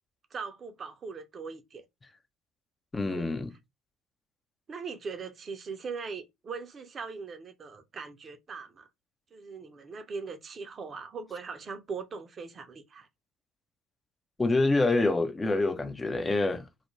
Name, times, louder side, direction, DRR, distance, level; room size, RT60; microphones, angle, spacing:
voice 1, 0.3-1.8 3.1-3.4 4.7-8.9 9.3-13.1, right 5 dB, 40° right, 0.6 m, -40 dB
voice 2, 2.9-3.5 14.4-16.7, left 2 dB, 20° left, 0.5 m, -26 dB
2.4 x 2.1 x 3.1 m
hypercardioid pair, 65°, 0 cm